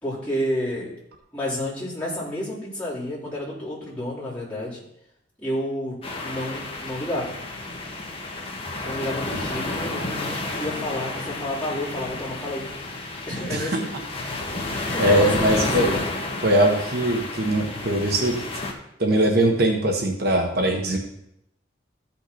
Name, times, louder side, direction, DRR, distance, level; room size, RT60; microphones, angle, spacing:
voice 1, 0.0-0.9 1.3-4.8 5.4-7.4 8.8-12.7 13.3-13.9 14.8-16.0, left 1 dB, 5° left, -9 dB, 4.2 m, -30 dB
sound 1, 6.0-18.7, left 2 dB, 30° left, 1.4 m, -31 dB
voice 2, 13.5-13.8 14.7-15.9 16.4-18.4 19.0-21.0, right 1 dB, 55° right, 2 dB, 1.2 m, -21 dB
13.5 x 5.8 x 4.3 m, 0.80 s
head